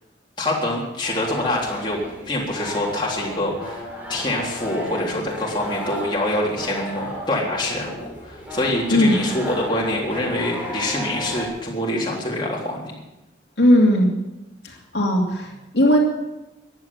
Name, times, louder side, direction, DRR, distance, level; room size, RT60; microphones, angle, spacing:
voice 1, 0.4-2.0 2.3-12.9, left 1 dB, 25° left, -3 dB, 3.5 m, -25 dB
sound 1, 1.0-11.5, equal, 10° right, 4.2 m, -34 dB
voice 2, 13.6-14.1 14.6-16.0, left 1 dB, 70° left, -1 dB, 2.7 m, -17 dB
15.0 x 11.0 x 7.3 m, 0.98 s
head